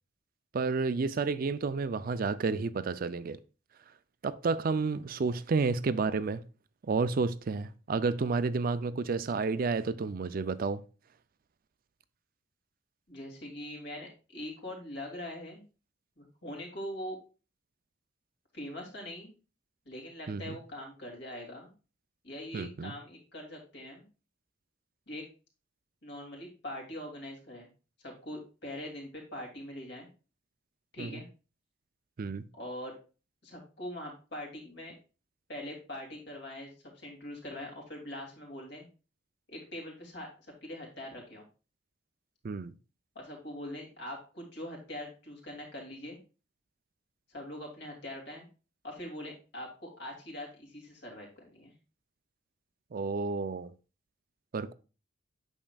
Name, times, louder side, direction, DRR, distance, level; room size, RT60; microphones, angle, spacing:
voice 1, 0.5-3.4 4.2-6.4 6.9-10.8 20.3-20.6 22.5-22.9 31.0-31.2 32.2-32.4 42.4-42.7 52.9-53.7 54.5-54.7, right 4 dB, 45° right, 0.4 m, -31 dB
voice 2, 13.1-15.6 16.2-17.2 18.5-19.3 19.8-21.7 22.2-24.0 25.1-25.2 26.0-27.7 28.0-30.1 30.9-31.3 32.5-33.0 33.4-34.9 35.5-38.8 39.5-41.4 43.1-46.2 47.3-48.4 48.8-51.7, left 1 dB, 60° left, 2.7 m, -42 dB
8.8 x 6.3 x 2.3 m
head